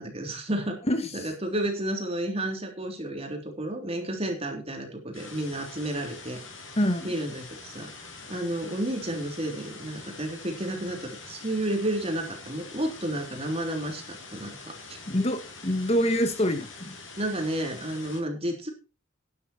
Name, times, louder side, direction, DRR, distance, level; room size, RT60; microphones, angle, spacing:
voice 1, 0.0-0.8 1.1-6.4 7.0-7.9 8.3-15.0 17.2-18.7, right 1 dB, 30° right, 3 dB, 3.3 m, -31 dB
voice 2, 0.9-1.3 6.8-7.1 15.1-16.9, equal, 35° left, 8 dB, 1.6 m, -26 dB
sound 1, 5.1-18.2, left 3 dB, 90° left, 6.2 m, -45 dB
11.5 x 11.0 x 4.4 m, 0.31 s
head